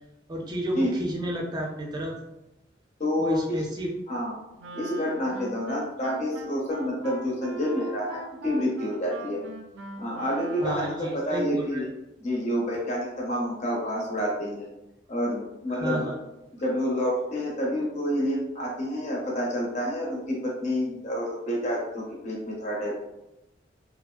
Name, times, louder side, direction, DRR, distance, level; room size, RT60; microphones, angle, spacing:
voice 1, 0.3-2.1 3.2-3.9 10.6-11.8 15.7-16.1, equal, 20° right, -1 dB, 0.4 m, -31 dB
voice 2, 3.0-3.6 4.1-4.3 4.7-9.4 10.0-11.9 12.2-14.7 15.1-16.1 16.5-23.0, equal, 40° left, -4 dB, 0.6 m, -28 dB
Wind instrument woodwind instrument, 4.6-11.2, right 3 dB, 90° right, 0.3 m, -41 dB
2.9 x 2.4 x 2.2 m, 0.91 s
head